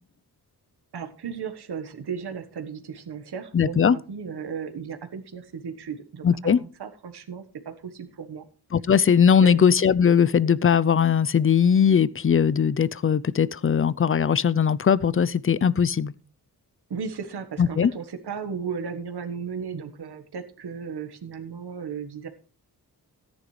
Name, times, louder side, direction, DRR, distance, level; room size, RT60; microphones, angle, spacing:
voice 1, 0.9-8.5 9.4-9.6 16.9-22.3, right 6 dB, 85° right, 1.4 m, -35 dB
voice 2, 3.5-4.0 6.2-6.6 8.7-16.1 17.6-17.9, left 7 dB, 35° left, 0.5 m, -20 dB
14.0 x 10.5 x 3.2 m
wide cardioid pair, 110°, 38 cm